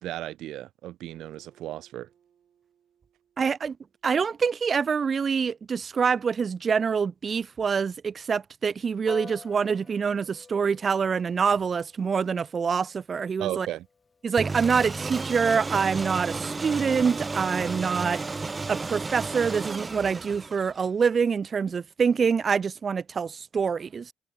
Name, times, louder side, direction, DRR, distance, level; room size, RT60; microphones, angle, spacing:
voice 1, 0.0-2.1 13.4-13.9, right 14 dB, 85° right, 0.8 m, -35 dB
Acoustic guitar, 1.1-4.7, right 9 dB, 60° right, 5.5 m, -66 dB
voice 2, 3.4-3.8 4.0-13.7 14.2-18.2 18.7-24.1, right 6 dB, 45° right, 0.5 m, -25 dB
Piano, 9.1-18.8, left 4 dB, 35° left, 1.6 m, -51 dB
sound 1, 14.4-20.9, right 3 dB, 25° right, 0.8 m, -33 dB
cardioid pair, 90°, 0 cm